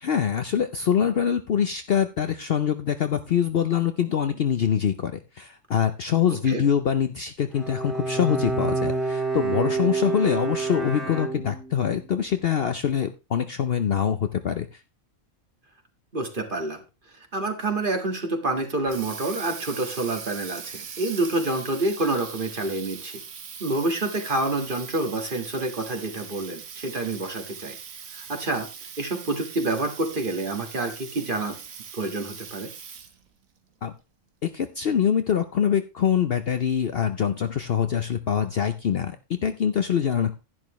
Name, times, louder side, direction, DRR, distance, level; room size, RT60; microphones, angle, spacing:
voice 1, 0.0-14.8 33.8-33.9 34.4-40.3, left 8 dB, 55° left, 9 dB, 0.8 m, -24 dB
Bowed string instrument, 7.5-11.9, right 4 dB, ahead, 1.8 m, -28 dB
voice 2, 16.1-16.8 17.3-23.2 23.6-27.8 28.1-28.7 29.0-31.6 31.9-32.7, right 2 dB, 40° right, 5 dB, 1.8 m, -28 dB
Water tap faucet, 18.6-33.3, right 7 dB, 75° right, 1.5 m, -41 dB
11.0 x 10.5 x 3.1 m, 0.27 s
omnidirectional pair, 1.4 m